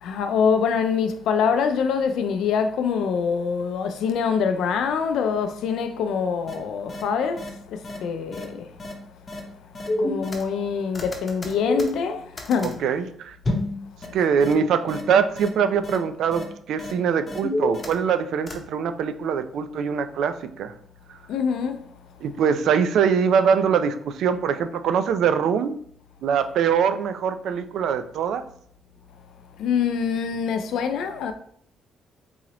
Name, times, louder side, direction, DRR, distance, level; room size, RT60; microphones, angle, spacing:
voice 1, 0.0-8.7 10.0-12.8 21.3-21.8 29.6-31.3, left 6 dB, 80° left, 0.4 m, -25 dB
sound 1, 6.5-6.6 6.9-7.0 7.4-7.5 7.8-8.0 8.3-8.4 8.8-8.9 9.3-9.4 9.7-10.7 10.9-12.7 13.4-13.7 14.0-14.1 14.4-14.5 14.9-15.0 15.4-15.5 15.8-16.0 16.3-16.4 16.8-16.9 17.3-18.2 18.5-18.6, left 1 dB, 30° left, 0.9 m, -28 dB
voice 2, 12.6-13.4 14.1-20.7 22.2-25.8 26.2-28.4, right 7 dB, 75° right, 0.3 m, -23 dB
3.8 x 2.9 x 2.9 m
cardioid pair, 90°, 0 cm